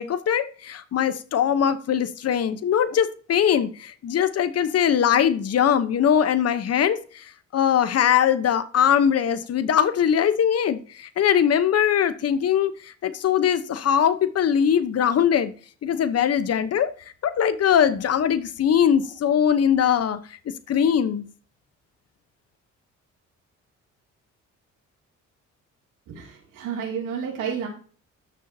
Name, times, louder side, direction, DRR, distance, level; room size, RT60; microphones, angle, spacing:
voice 1, 0.0-7.2 7.5-12.7 13.0-15.5 15.8-16.9 17.2-20.2 20.7-21.2, left 8 dB, 55° left, 12 dB, 1.0 m, -21 dB
voice 2, 26.1-27.7, right 7 dB, 85° right, -1 dB, 2.7 m, -31 dB
12.5 x 6.8 x 2.8 m, 0.40 s
cardioid pair, 90°, 30 cm